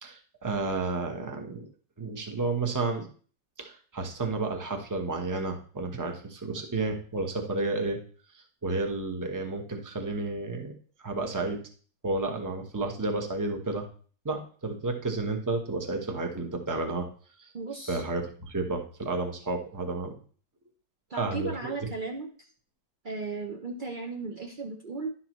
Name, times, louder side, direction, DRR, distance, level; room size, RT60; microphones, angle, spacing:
voice 1, 0.0-1.7 2.0-3.1 3.6-8.0 8.3-10.7 11.0-11.6 12.0-13.9 14.2-17.1 17.4-17.5 17.9-20.2 21.1-21.7, right 3 dB, 20° right, 3 dB, 0.5 m, -31 dB
voice 2, 17.5-18.1 21.1-22.3 23.0-25.1, right 3 dB, 75° right, 1 dB, 0.4 m, -36 dB
11.0 x 5.8 x 3.0 m, 0.43 s
omnidirectional pair, 2.0 m